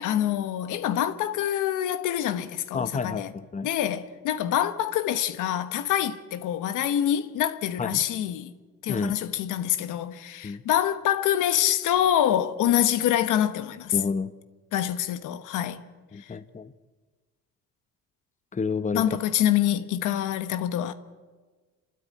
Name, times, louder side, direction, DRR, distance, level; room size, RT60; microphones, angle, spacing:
voice 1, 0.0-3.3 3.6-8.5 8.8-14.0 14.7-15.8 16.2-16.4 18.9-20.9, left 11 dB, 90° left, 1.3 m, -26 dB
voice 2, 2.7-3.7 7.8-8.0 8.9-9.1 10.4-10.6 13.9-14.3 16.1-16.7 18.5-19.2, left 5 dB, 25° left, 1.0 m, -29 dB
28.0 x 12.5 x 9.5 m
cardioid pair, 90°, 30 cm